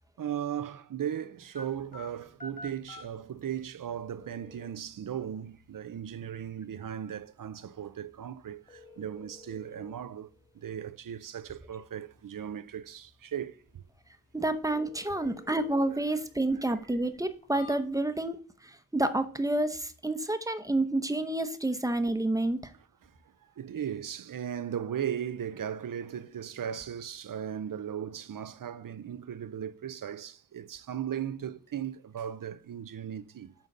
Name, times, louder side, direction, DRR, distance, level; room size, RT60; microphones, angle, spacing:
voice 1, 0.2-10.3 10.6-13.8 23.0-23.1 23.4-33.5, right 9 dB, 80° right, 0.6 m, -37 dB
sound 1, 1.5-18.3, left 2 dB, 25° left, 2.1 m, -53 dB
voice 2, 14.3-22.7, right 2 dB, 10° right, 0.8 m, -29 dB
8.9 x 4.0 x 6.6 m
wide cardioid pair, 90°, 32 cm